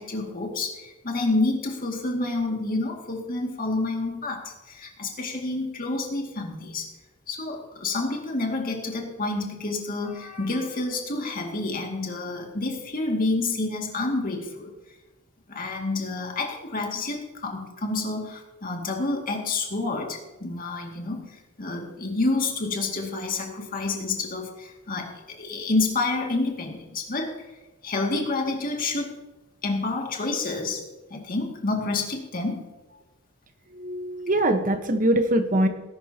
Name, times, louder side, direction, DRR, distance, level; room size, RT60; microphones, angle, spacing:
voice 1, 0.0-6.9 7.3-14.7 15.5-21.3 21.6-27.5 27.8-29.2 29.6-30.8 31.1-32.6, left 3 dB, 40° left, 1 dB, 2.3 m, -28 dB
voice 2, 33.7-35.7, right 1 dB, 40° right, 7 dB, 1.2 m, -23 dB
19.0 x 11.5 x 2.9 m, 1.1 s
head